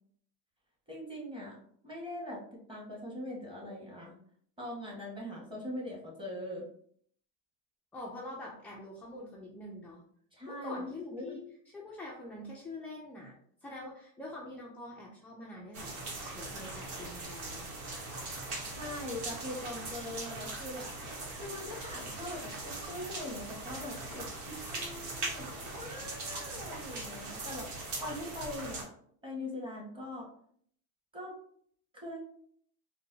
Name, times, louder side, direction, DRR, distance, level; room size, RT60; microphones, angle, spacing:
voice 1, 0.9-1.6 1.8-4.1 4.6-6.7 10.3-11.4 18.6-20.9 21.3-28.9 29.2-30.3 31.1-31.3 32.0-32.2, left 1 dB, 10° right, -3 dB, 1.4 m, -42 dB
voice 2, 7.9-10.0 10.5-11.4 11.7-13.4 13.6-15.9 16.3-17.7, left 1 dB, 5° left, -4 dB, 0.3 m, -45 dB
sound 1, 15.7-28.8, right 2 dB, 85° right, 1.1 m, -41 dB
3.9 x 2.2 x 2.6 m, 0.63 s
supercardioid pair, 110°, 43 cm